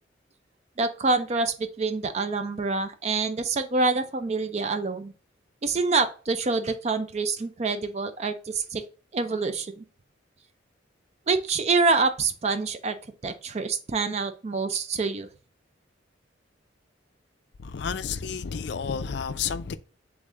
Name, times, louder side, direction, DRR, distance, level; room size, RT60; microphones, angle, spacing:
voice 1, 0.8-5.1 5.6-8.8 9.1-9.8 11.3-13.0 13.2-15.3, right 4 dB, 35° right, 0.4 m, -26 dB
voice 2, 17.6-19.8, left 6 dB, 65° left, 0.4 m, -31 dB
3.6 x 3.4 x 3.7 m
head